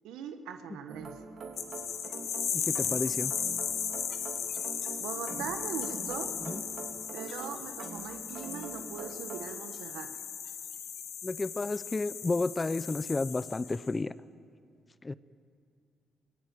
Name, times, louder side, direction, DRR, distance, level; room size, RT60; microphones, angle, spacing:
voice 1, 0.0-1.2 5.0-6.4 7.1-10.1, right 8 dB, 85° right, 7 dB, 1.1 m, -40 dB
sound 1, 0.9-9.6, right 4 dB, 60° right, 3.0 m, -44 dB
sound 2, 1.6-13.9, left 8 dB, 70° left, 2.0 m, -36 dB
voice 2, 2.5-3.3 6.4-6.6 11.2-14.1 15.0-15.1, left 3 dB, 25° left, 16 dB, 0.6 m, -31 dB
24.0 x 17.0 x 9.3 m, 2.2 s
cardioid pair, 75°, 0 cm